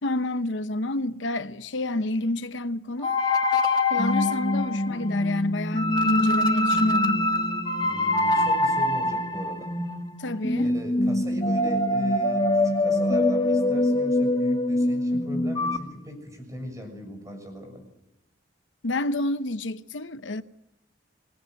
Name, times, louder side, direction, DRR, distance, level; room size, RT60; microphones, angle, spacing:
voice 1, 0.0-3.2 3.9-7.3 10.2-10.7 18.8-20.4, left 2 dB, 80° left, 0.9 m, -29 dB
sound 1, 3.0-15.8, left 1 dB, 25° left, 1.9 m, -24 dB
voice 2, 7.8-9.7 10.6-17.8, equal, 20° right, 6.8 m, -39 dB
26.5 x 19.5 x 7.8 m
head